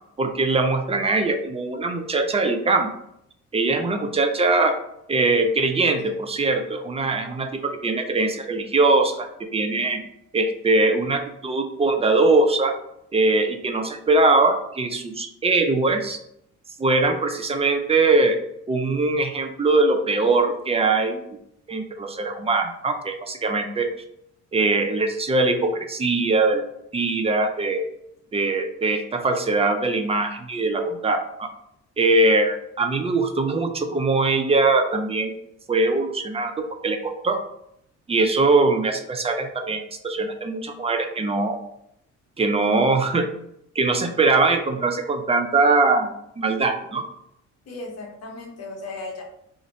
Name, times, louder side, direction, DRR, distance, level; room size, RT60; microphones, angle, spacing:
voice 1, 0.2-2.9 3.5-4.8 5.1-9.3 9.5-10.0 10.3-12.7 13.1-16.2 16.8-18.4 18.7-21.4 21.7-23.9 24.5-26.6 26.9-27.9 28.3-31.5 32.0-35.3 35.7-37.4 38.1-41.6 42.4-43.3 43.8-47.0, right 3 dB, 20° right, 5 dB, 0.4 m, -21 dB
voice 2, 47.7-49.2, left 2 dB, 55° left, 0 dB, 0.8 m, -36 dB
2.5 x 2.1 x 3.9 m, 0.75 s
cardioid pair, 90°, 30 cm